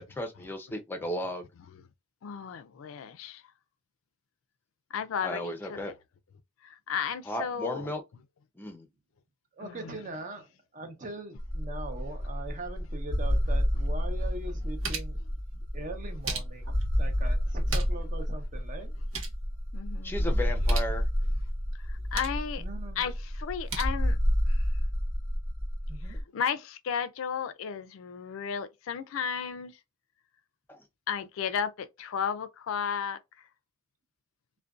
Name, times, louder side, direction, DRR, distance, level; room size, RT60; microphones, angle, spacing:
voice 1, 0.0-1.5 5.2-5.9 7.3-8.0 8.6-8.9 20.0-21.0 30.7-30.8, left 1 dB, 10° left, 0.5 m, -35 dB
voice 2, 2.2-3.4 4.9-6.0 6.6-7.9 9.6-10.0 19.7-20.3 21.9-22.6 23.0-24.2 24.5-24.6 26.1-29.8 31.1-33.2, left 7 dB, 80° left, 0.4 m, -34 dB
voice 3, 9.5-10.5 10.7-15.2 15.5-18.9 22.6-23.0 25.9-26.2, right 2 dB, 40° right, 0.6 m, -41 dB
sound 1, 11.4-26.2, equal, 70° right, 1.4 m, -30 dB
sound 2, 13.8-13.9 14.4-15.3 16.0-16.8 17.5-18.1 18.4-18.5 18.8-19.4 20.5-20.9 21.8-22.5 23.4-23.8, right 2 dB, 90° right, 0.8 m, -37 dB
2.5 x 2.2 x 2.3 m
head